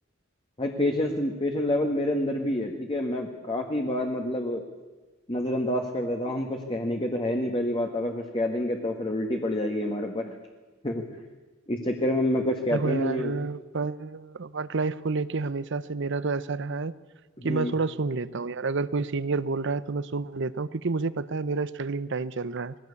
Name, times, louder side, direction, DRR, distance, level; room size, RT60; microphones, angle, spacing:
voice 1, 0.6-4.6 5.3-10.4 10.8-11.0 11.7-13.3 17.4-17.7, left 1 dB, 25° left, 2 dB, 1.6 m, -28 dB
voice 2, 12.7-16.9 17.4-22.7, right 4 dB, 65° right, 16 dB, 0.7 m, -29 dB
21.0 x 16.5 x 8.4 m, 1.3 s
head